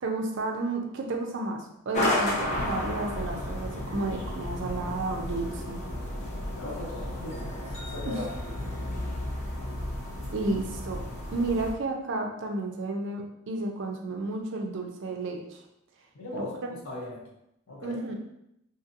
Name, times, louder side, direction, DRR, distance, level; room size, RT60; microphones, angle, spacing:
voice 1, 0.0-5.8 8.0-8.1 10.3-11.0 11.3-15.6 16.3-16.4 17.8-18.1, right 2 dB, 55° right, 3 dB, 0.4 m, -32 dB
sound 1, 1.9-11.7, left 1 dB, 35° left, 0.6 m, -32 dB
voice 2, 6.5-8.3 16.1-17.3 17.7-18.0, left 1 dB, 90° left, -3 dB, 0.8 m, -38 dB
2.8 x 2.6 x 2.6 m, 0.81 s
head